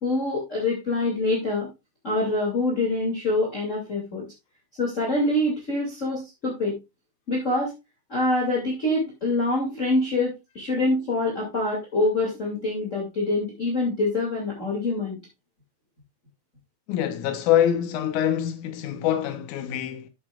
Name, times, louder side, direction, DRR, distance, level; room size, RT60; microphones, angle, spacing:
voice 1, 0.0-1.7 2.0-4.2 4.8-6.8 7.3-7.7 8.1-15.2, left 2 dB, 25° left, 2.7 m, -25 dB
voice 2, 16.9-20.1, left 10 dB, 90° left, 2.5 m, -24 dB
11.5 x 8.8 x 2.4 m
omnidirectional pair, 3.4 m